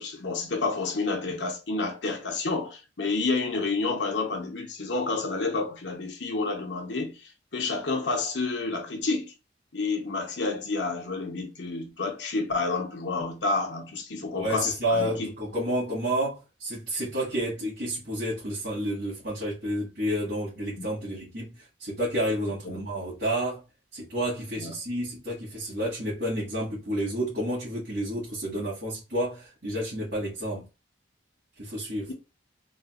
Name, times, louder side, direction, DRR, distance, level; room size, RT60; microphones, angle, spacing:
voice 1, 0.0-7.1 7.5-9.3 9.7-15.3 22.6-22.8 24.6-24.7, left 3 dB, 70° left, 1.0 m, -29 dB
voice 2, 14.3-23.6 23.9-30.6 31.6-32.1, right 1 dB, 60° right, 1.9 m, -30 dB
4.0 x 2.4 x 2.4 m
head